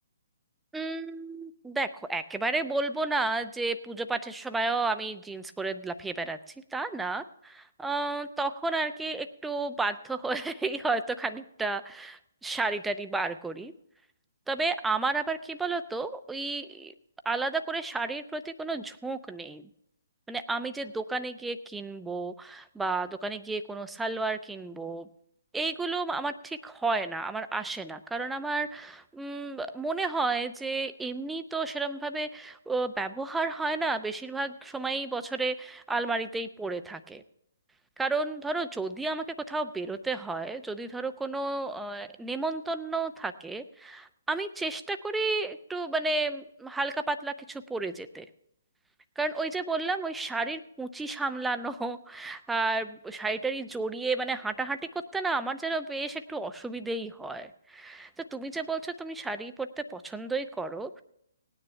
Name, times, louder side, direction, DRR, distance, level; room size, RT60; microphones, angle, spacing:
voice 1, 0.7-6.4 6.7-13.7 14.5-16.9 17.2-19.7 20.3-25.1 25.5-37.2 38.0-48.3 49.2-61.0, right 3 dB, 5° right, 9 dB, 0.6 m, -32 dB
18.5 x 9.7 x 3.3 m, 0.74 s
figure-of-eight pair, 135°, 0 cm